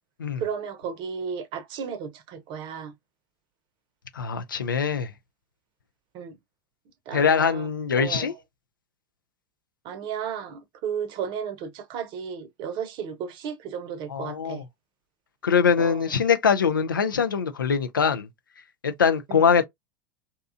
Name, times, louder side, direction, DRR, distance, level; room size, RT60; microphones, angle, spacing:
voice 1, 0.4-2.9 6.1-6.4 7.1-7.7 7.9-8.3 9.8-14.6 15.8-16.1 19.3-19.6, right 7 dB, 45° right, 0.7 m, -34 dB
voice 2, 4.1-5.1 7.1-8.3 14.1-14.6 15.4-18.3 18.8-19.6, left 6 dB, 80° left, 0.4 m, -23 dB
2.7 x 2.3 x 2.4 m
figure-of-eight pair, 80°, 11 cm